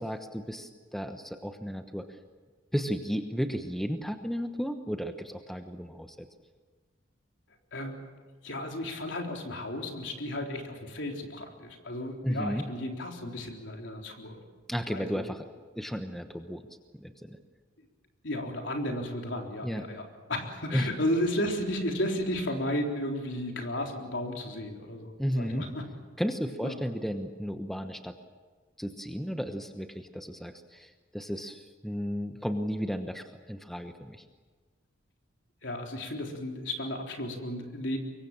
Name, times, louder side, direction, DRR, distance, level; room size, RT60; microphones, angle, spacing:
voice 1, 0.0-2.1 2.7-6.3 12.2-12.7 14.7-15.5 15.7-16.6 16.9-17.4 19.6-19.8 20.7-20.9 25.2-25.6 26.2-28.1 28.8-34.2, equal, ahead, 6 dB, 1.0 m, -33 dB
voice 2, 8.4-14.4 14.9-15.2 18.2-25.8 26.6-26.8 35.6-38.0, left 1 dB, 65° left, 2 dB, 3.9 m, -33 dB
24.5 x 23.0 x 7.4 m, 1.4 s
head